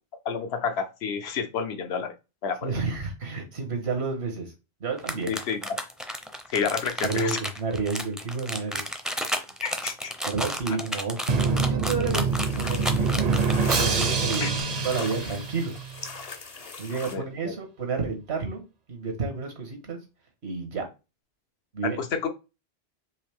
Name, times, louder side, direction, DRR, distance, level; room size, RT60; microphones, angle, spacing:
voice 1, 0.2-2.1 2.4-2.7 5.3-5.7 6.5-7.4 9.6-10.1 14.4-14.5 17.1-17.2 21.8-22.3, left 6 dB, 75° left, 8 dB, 1.0 m, -29 dB
voice 2, 2.6-4.5 4.8-5.4 7.0-8.8 10.2-13.5 13.7-14.6 14.8-15.7 16.8-18.6 18.9-20.0 20.4-20.9 21.7-22.0, right 4 dB, 85° right, 3 dB, 1.6 m, -30 dB
sound 1, 5.0-14.6, equal, ahead, 0.4 m, -32 dB
Drum, 11.3-16.1, right 4 dB, 45° right, 0.6 m, -26 dB
sound 2, 12.1-17.2, left 5 dB, 45° left, 0.6 m, -40 dB
4.7 x 3.1 x 3.5 m, 0.28 s
omnidirectional pair, 1.1 m